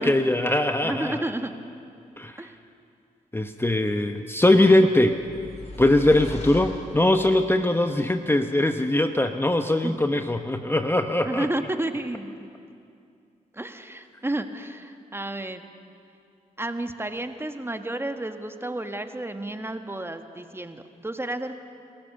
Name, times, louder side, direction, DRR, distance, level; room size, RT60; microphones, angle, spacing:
voice 1, 0.0-1.2 2.2-2.4 3.3-5.2 5.8-11.5, left 1 dB, 15° left, 7 dB, 0.9 m, -21 dB
voice 2, 0.8-1.5 2.4-2.6 9.8-10.0 11.2-12.5 13.5-15.7 16.6-21.5, right 1 dB, 15° right, 7 dB, 1.5 m, -31 dB
sound 1, 5.1-7.5, left 2 dB, 50° left, 3.8 m, -39 dB
27.0 x 15.0 x 6.9 m, 2.4 s
cardioid pair, 55°, 15 cm